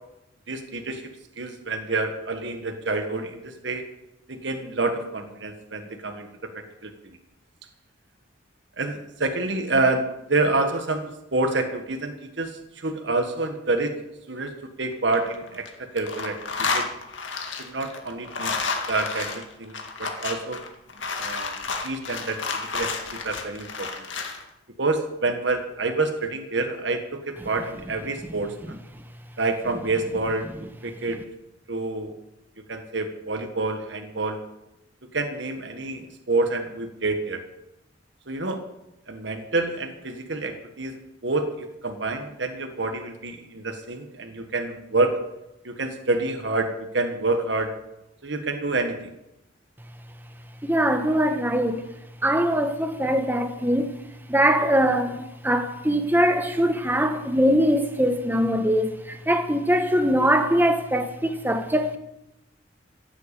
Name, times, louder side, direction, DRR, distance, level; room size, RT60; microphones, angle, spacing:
voice 1, 0.5-3.9 4.3-6.3 6.5-7.2 8.8-14.0 14.3-14.5 14.8-16.9 17.6-18.6 18.9-20.6 21.2-21.6 21.8-22.4 22.7-24.0 24.8-28.7 29.4-30.5 30.8-31.2 31.7-32.1 32.7-34.4 35.1-37.4 38.3-38.6 39.1-41.0 41.2-45.2 45.6-47.8 48.2-49.1, right 3 dB, 65° right, 1.6 m, -28 dB
sound 1, 14.9-15.7 16.0-24.4, left 4 dB, 75° left, 2.1 m, -31 dB
voice 2, 50.7-51.8 52.2-53.9 54.3-62.0, equal, 10° right, 1.2 m, -22 dB
15.5 x 8.0 x 8.5 m
head